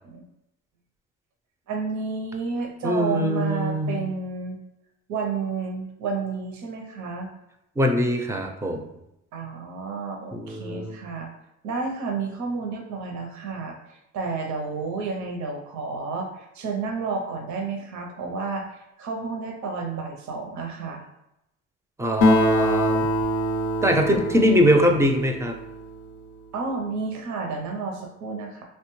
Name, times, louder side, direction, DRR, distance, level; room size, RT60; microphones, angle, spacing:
voice 1, 1.7-4.6 5.1-7.3 9.3-11.3 11.6-21.0 26.5-28.6, right 4 dB, 70° right, 2 dB, 0.6 m, -31 dB
voice 2, 2.8-4.1 7.8-8.9 10.3-11.0 22.0-23.1 23.8-25.5, equal, 10° right, 3 dB, 0.4 m, -22 dB
Acoustic guitar, 22.2-26.0, left 1 dB, 80° left, 0.5 m, -24 dB
3.0 x 2.1 x 3.0 m, 0.85 s
cardioid pair, 90°, 30 cm